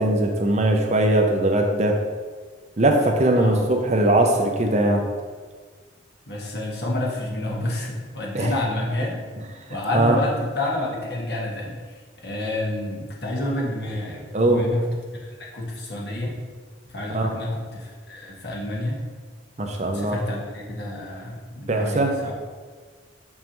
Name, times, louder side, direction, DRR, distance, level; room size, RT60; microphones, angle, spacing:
voice 1, 0.0-2.0 2.8-5.0 8.3-8.5 9.9-10.2 14.3-14.6 17.1-17.3 19.6-20.2 21.7-22.1, right 1 dB, 35° right, 3 dB, 0.6 m, -20 dB
voice 2, 3.3-3.7 6.3-9.2 9.7-11.8 12.2-14.8 15.2-16.3 16.8-19.0 19.9-22.3, left 1 dB, 60° left, -3 dB, 1.4 m, -29 dB
6.4 x 5.6 x 3.0 m, 1.5 s
head